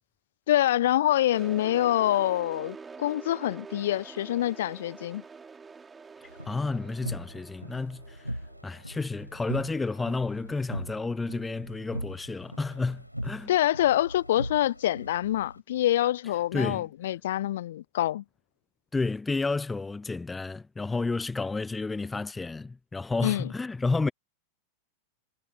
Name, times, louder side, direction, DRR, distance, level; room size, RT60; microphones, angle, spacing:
voice 1, 0.5-5.2 13.5-18.2 23.2-23.5, left 13 dB, 60° left, 1.0 m, -26 dB
sound 1, 1.3-8.9, right 5 dB, 15° right, 3.4 m, -46 dB
voice 2, 6.2-13.5 16.5-16.9 18.9-24.1, left 3 dB, 10° left, 0.6 m, -31 dB
sound 2, 6.2-15.6, equal, 90° right, 6.1 m, -40 dB
figure-of-eight pair, 90°, 0 cm